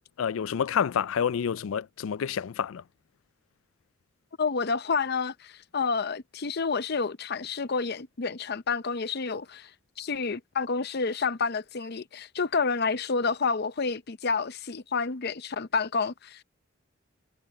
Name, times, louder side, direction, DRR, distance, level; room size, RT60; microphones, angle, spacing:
voice 1, 0.2-2.8, left 7 dB, 90° left, 0.4 m, -28 dB
voice 2, 4.4-9.7 10.0-16.4, left 4 dB, 55° left, 0.7 m, -29 dB
head